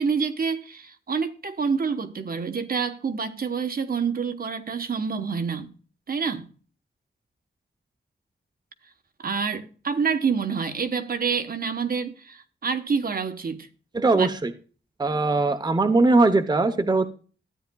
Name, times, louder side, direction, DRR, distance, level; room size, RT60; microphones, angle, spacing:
voice 1, 0.0-5.7 6.1-6.5 9.2-13.7 14.1-14.3, right 5 dB, 55° right, 1.0 m, -27 dB
voice 2, 13.9-14.5 15.0-17.0, right 3 dB, 20° right, 0.7 m, -20 dB
13.0 x 9.1 x 2.3 m
wide cardioid pair, 135°, 18 cm